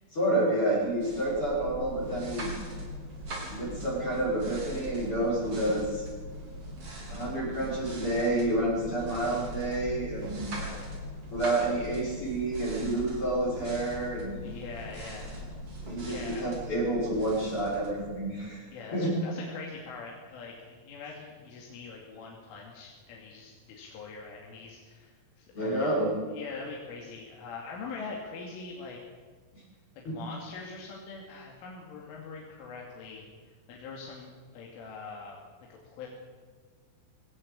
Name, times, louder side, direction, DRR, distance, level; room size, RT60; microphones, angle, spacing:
voice 1, 0.1-2.5 3.5-6.0 7.1-10.5 11.3-14.4 15.9-18.6 18.9-19.1 25.5-26.1 30.0-30.1, right 1 dB, 25° left, -6 dB, 6.6 m, -29 dB
sound 1, 0.7-18.5, equal, 30° right, 4.5 m, -41 dB
voice 2, 9.0-9.4 10.5-10.9 14.4-15.4 16.1-16.5 18.7-26.0 26.3-29.0 30.0-35.4 35.7-36.1, left 4 dB, 75° left, -1 dB, 5.0 m, -43 dB
22.5 x 18.5 x 8.3 m, 1.5 s
omnidirectional pair, 5.9 m